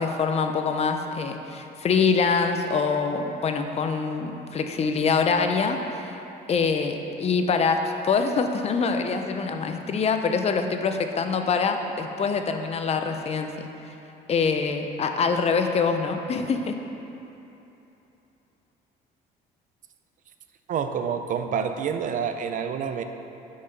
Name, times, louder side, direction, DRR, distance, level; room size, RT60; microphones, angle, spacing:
voice 1, 0.0-6.1 6.5-7.8 8.0-13.7 14.3-16.8, left 5 dB, 40° left, 6 dB, 0.6 m, -25 dB
voice 2, 20.7-23.0, right 7 dB, 50° right, 7 dB, 0.5 m, -28 dB
6.3 x 5.7 x 5.8 m, 2.9 s
cardioid pair, 110°, 17 cm